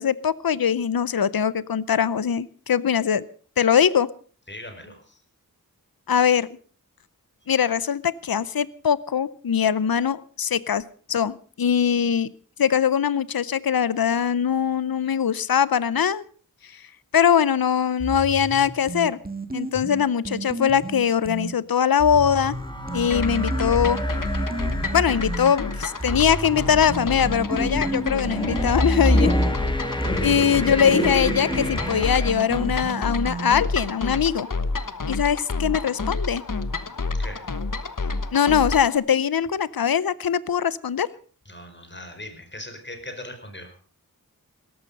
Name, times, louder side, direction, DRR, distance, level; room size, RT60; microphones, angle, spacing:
voice 1, 0.0-3.2 3.6-4.1 6.1-6.5 7.5-10.8 11.1-12.3 12.6-16.2 16.6-16.9 17.1-19.2 19.5-22.5 22.9-24.0 24.9-29.3 30.2-34.5 35.1-36.4 38.3-41.1, left 8 dB, 80° left, 19 dB, 0.7 m, -22 dB
voice 2, 4.5-5.2 37.1-37.4 41.4-43.8, left 1 dB, 30° left, 7 dB, 4.8 m, -39 dB
sound 1, 18.0-21.5 22.0-25.5 26.0-33.8, right 2 dB, 25° right, 1.9 m, -33 dB
sound 2, 22.1-32.3, equal, 15° left, 2.9 m, -27 dB
sound 3, 23.1-39.0, left 3 dB, 60° left, 1.3 m, -30 dB
17.5 x 14.0 x 5.3 m, 0.42 s
wide cardioid pair, 50°, 35 cm